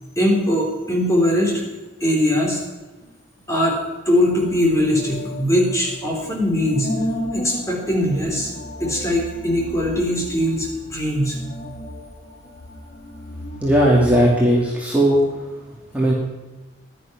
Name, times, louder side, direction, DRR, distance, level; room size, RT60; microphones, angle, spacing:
voice 1, 0.2-1.7 2.0-2.6 3.5-6.9 7.3-8.5 8.8-11.4, left 1 dB, 15° left, -1 dB, 3.9 m, -21 dB
sound 1, 4.1-14.3, equal, 45° left, 4.1 m, -34 dB
voice 2, 13.6-15.5 15.9-16.1, equal, 5° right, -4 dB, 2.6 m, -17 dB
16.0 x 11.5 x 6.0 m, 1.2 s
head